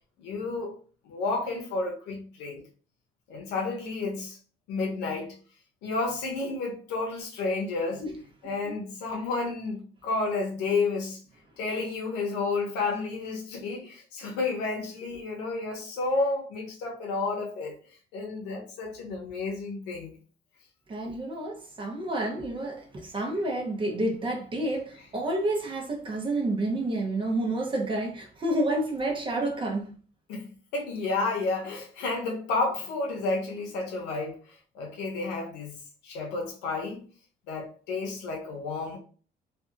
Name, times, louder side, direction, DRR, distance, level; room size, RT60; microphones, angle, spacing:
voice 1, 0.2-0.8 1.0-2.6 3.3-4.4 4.7-5.4 5.8-8.0 8.4-11.2 11.6-17.7 18.1-20.1 30.3-34.4 34.7-35.8 36.0-37.0 37.5-39.0, left 3 dB, 90° left, 0.9 m, -31 dB
voice 2, 8.4-8.8 20.9-29.9, right 1 dB, 30° right, 0.8 m, -29 dB
2.7 x 2.5 x 2.5 m
cardioid pair, 110°, 17 cm